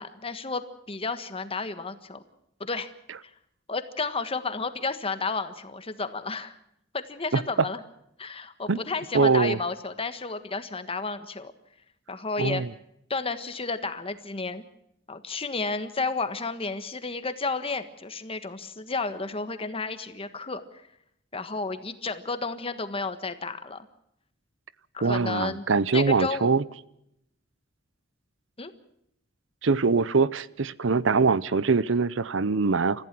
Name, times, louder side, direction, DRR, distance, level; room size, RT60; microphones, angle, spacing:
voice 1, 0.0-2.2 2.6-2.9 3.7-6.5 6.9-7.8 8.2-11.5 12.1-12.6 13.1-14.6 15.1-20.6 21.3-23.9 24.9-25.6 25.9-26.5 28.6-28.7, left 3 dB, 30° left, 10 dB, 1.5 m, -32 dB
voice 2, 9.1-9.6 12.4-12.7 25.0-26.6 29.6-33.1, right 4 dB, 70° right, 19 dB, 0.7 m, -23 dB
29.5 x 15.0 x 6.1 m, 0.76 s
head